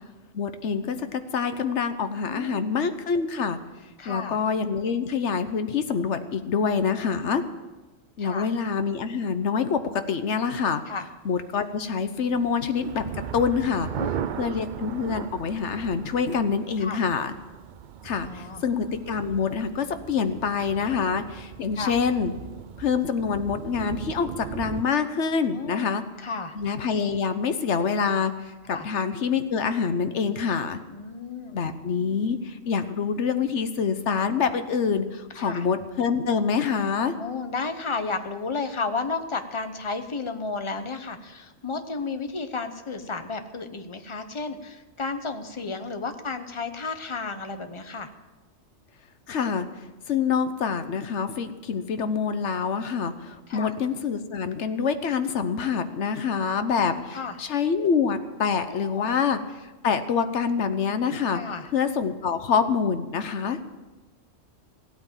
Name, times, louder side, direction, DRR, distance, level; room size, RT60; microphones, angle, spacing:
voice 1, 0.3-3.6 4.1-7.4 8.2-10.8 11.2-13.0 13.3-13.9 14.4-17.3 18.0-22.3 22.8-26.0 26.5-28.3 28.7-30.8 31.5-37.1 49.3-49.7 50.1-59.4 59.8-61.4 61.7-63.6, left 6 dB, 65° left, 10 dB, 1.2 m, -26 dB
voice 2, 2.2-2.6 4.0-4.4 6.9-7.1 8.2-8.5 10.9-11.1 13.8-14.4 16.8-17.0 18.2-18.6 20.9-21.1 21.8-21.9 25.5-26.6 28.7-28.9 30.9-31.6 35.3-35.7 37.2-48.1 53.5-53.7 56.5-57.4 58.7-59.1 61.3-61.7, left 4 dB, 25° left, 8 dB, 0.9 m, -33 dB
sound 1, 12.0-24.8, right 9 dB, 60° right, 0.5 m, -38 dB
16.0 x 8.8 x 7.3 m, 1.1 s
omnidirectional pair, 1.3 m